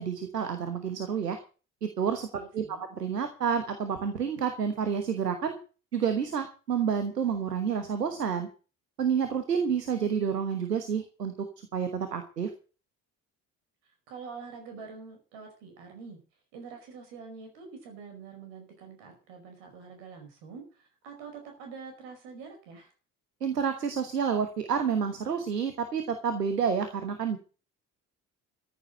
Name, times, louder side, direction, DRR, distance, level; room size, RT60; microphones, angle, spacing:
voice 1, 0.0-1.4 1.8-2.3 2.5-2.6 2.9-5.5 5.9-8.5 9.0-11.3 11.7-12.5 23.4-27.4, right 7 dB, 85° right, 8 dB, 1.3 m, -29 dB
voice 2, 2.4-2.8 14.1-16.2 16.5-22.9, right 5 dB, 65° right, 4 dB, 5.1 m, -45 dB
14.0 x 7.4 x 7.7 m, 0.35 s
figure-of-eight pair, 45°, 47 cm